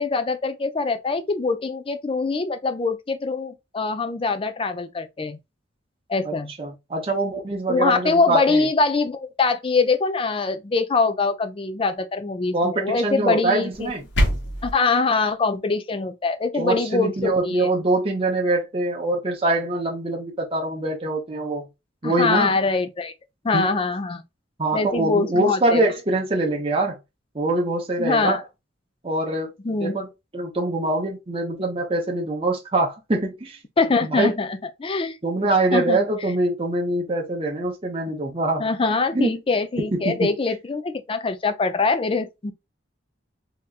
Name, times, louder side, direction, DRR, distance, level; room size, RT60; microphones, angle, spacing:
voice 1, 0.0-5.4 6.1-6.5 7.7-13.9 14.6-17.7 22.0-23.1 23.4-24.2 24.7-25.8 28.0-28.4 29.6-30.0 33.8-35.2 35.7-36.0 38.6-42.5, left 4 dB, 30° left, 0.4 m, -23 dB
voice 2, 6.2-8.7 12.5-14.1 16.5-21.7 22.0-22.6 23.5-23.7 24.6-27.0 27.3-28.4 29.0-29.5 29.8-33.6 34.0-34.3 35.2-38.7 39.1-39.4 39.8-40.3, right 2 dB, 30° right, 0.7 m, -24 dB
sound 1, 13.7-14.7, equal, 70° left, 1.2 m, -24 dB
3.4 x 2.9 x 2.4 m
head